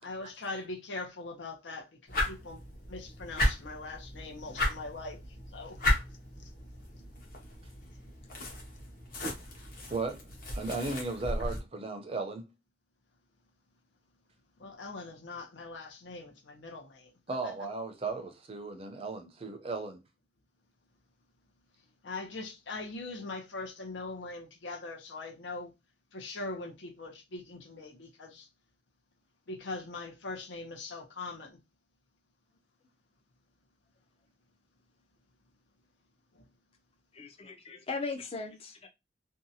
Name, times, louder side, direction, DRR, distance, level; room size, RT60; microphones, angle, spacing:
voice 1, 0.0-2.6 2.9-5.2 5.5-5.8 6.4-6.5 14.6-17.6 22.0-25.7 26.1-28.5 29.5-31.6 36.3-36.4, left 3 dB, 85° left, 0.7 m, -41 dB
sound 1, 2.1-11.6, left 1 dB, 50° left, 0.8 m, -35 dB
voice 2, 9.9-10.3 10.5-12.5 17.3-20.0, right 3 dB, 30° right, 0.5 m, -36 dB
voice 3, 37.1-38.9, left 4 dB, 35° left, 0.4 m, -38 dB
2.7 x 2.2 x 2.7 m
head